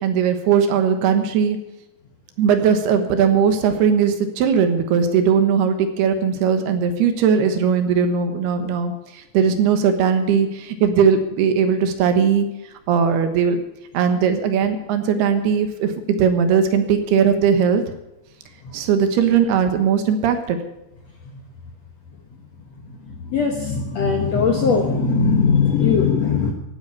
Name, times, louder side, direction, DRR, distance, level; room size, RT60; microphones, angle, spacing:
voice 1, 0.0-1.6 2.4-12.5 12.9-13.6 13.9-17.8 18.7-20.6, right 7 dB, 70° right, 8 dB, 3.1 m, -19 dB
voice 2, 22.8-26.5, left 5 dB, 75° left, 3 dB, 1.5 m, -20 dB
16.0 x 9.1 x 8.4 m, 0.90 s
omnidirectional pair, 5.1 m